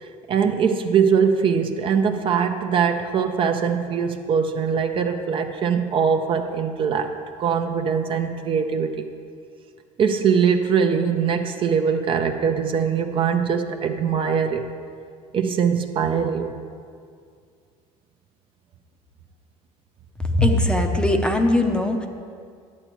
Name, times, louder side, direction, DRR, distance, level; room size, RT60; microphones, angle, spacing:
voice 1, 0.0-7.1 7.4-9.1 10.0-14.6 15.3-16.5, right 6 dB, 40° right, 6 dB, 0.5 m, -22 dB
voice 2, 20.3-22.1, left 1 dB, 5° left, 4 dB, 0.6 m, -20 dB
11.5 x 7.8 x 3.0 m, 2.2 s
cardioid pair, 125°, 14 cm